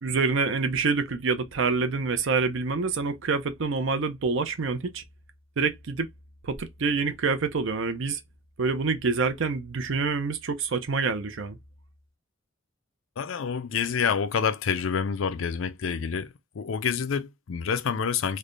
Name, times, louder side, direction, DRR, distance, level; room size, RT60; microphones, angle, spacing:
voice 1, 0.0-5.0 5.6-6.1 6.4-8.2 8.6-11.6, right 4 dB, 70° right, 0.6 m, -26 dB
voice 2, 13.2-16.3 16.6-18.4, left 6 dB, 70° left, 0.4 m, -27 dB
3.2 x 2.2 x 3.8 m
head